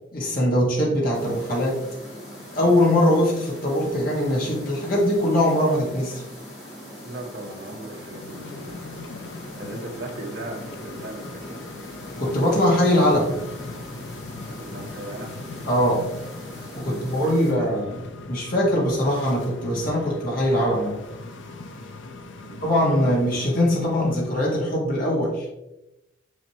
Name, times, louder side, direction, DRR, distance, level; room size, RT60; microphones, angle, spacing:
voice 1, 0.1-1.8 2.5-6.2 12.2-13.3 15.6-16.1 16.8-21.0 22.6-25.5, left 1 dB, 45° left, -4 dB, 1.9 m, -22 dB
sound 1, 1.1-17.5, equal, 30° left, 2.7 m, -41 dB
voice 2, 7.0-8.8 9.1-11.6 14.5-15.4 16.8-17.7 22.4-23.4, right 1 dB, 60° right, -3 dB, 1.6 m, -38 dB
sound 2, 7.9-24.5, left 3 dB, 65° left, 0.7 m, -40 dB
6.6 x 6.5 x 3.0 m, 0.92 s
head